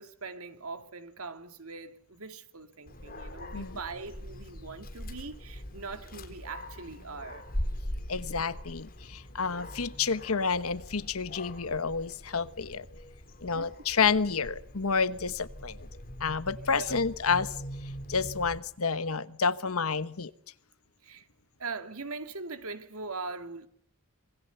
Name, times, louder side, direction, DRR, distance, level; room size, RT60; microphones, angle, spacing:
voice 1, 0.0-7.4 13.5-13.7 16.7-17.0 21.0-21.3 21.6-23.7, right 4 dB, 90° right, 2.5 m, -41 dB
Dog, 2.9-18.6, equal, 45° left, 3.8 m, -42 dB
voice 2, 8.1-12.9 13.4-15.9 16.2-17.5 18.1-20.3, left 5 dB, 85° left, 1.2 m, -29 dB
26.0 x 22.0 x 6.9 m
head